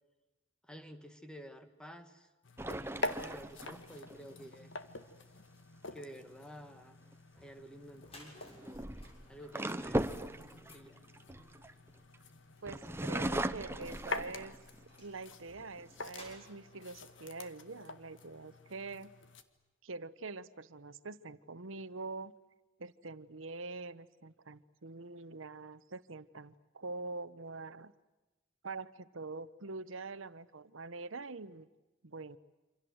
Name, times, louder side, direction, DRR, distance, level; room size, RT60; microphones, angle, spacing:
voice 1, 0.6-2.3 2.7-4.7 5.9-7.0 7.4-8.9 9.3-10.2 10.7-11.0, equal, 5° left, 8 dB, 1.9 m, -51 dB
sound 1, 2.4-19.4, left 3 dB, 65° left, 1.9 m, -47 dB
sound 2, 2.6-4.2 7.1-7.4 8.4-12.2 12.7-14.8 15.3-15.4 15.8-16.3, right 1 dB, 10° right, 0.9 m, -38 dB
sound 3, 7.9-18.7, left 1 dB, 30° left, 6.9 m, -61 dB
voice 2, 12.6-14.6 15.0-19.1 19.8-22.3 22.8-27.9 28.6-31.7 32.0-32.4, right 3 dB, 80° right, 14 dB, 1.1 m, -45 dB
28.0 x 26.5 x 8.0 m, 1.1 s
head